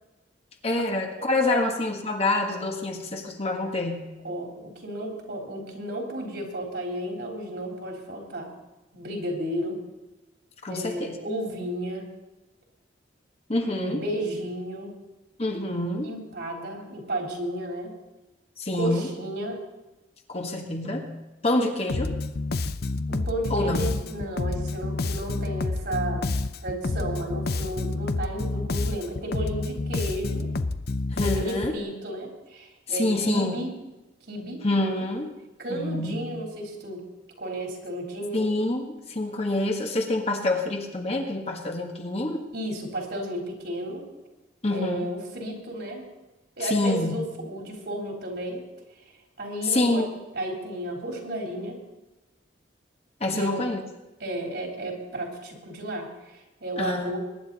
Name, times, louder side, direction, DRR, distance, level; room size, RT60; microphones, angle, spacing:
voice 1, 0.6-4.1 10.6-11.2 13.5-14.0 15.4-16.1 18.6-19.1 20.3-21.1 21.4-22.1 23.5-23.9 31.1-31.7 32.9-33.6 34.6-35.3 35.7-36.2 38.3-42.4 44.6-45.1 46.6-47.1 49.6-50.1 53.2-53.8 56.8-57.2, left 2 dB, 35° left, 2 dB, 1.6 m, -26 dB
voice 2, 4.2-8.5 8.9-9.8 10.7-12.1 13.7-15.0 16.0-17.9 18.7-19.6 23.1-26.3 26.6-30.5 31.2-33.7 34.3-34.6 35.6-37.0 37.4-38.4 42.5-44.1 44.7-46.0 46.6-48.6 49.4-50.0 50.3-51.8 53.3-53.6 54.2-57.2, right 1 dB, 60° right, 0 dB, 3.8 m, -33 dB
Bass guitar, 21.9-31.8, left 3 dB, 55° left, 0.6 m, -29 dB
22.5 x 10.5 x 4.1 m, 1.1 s
head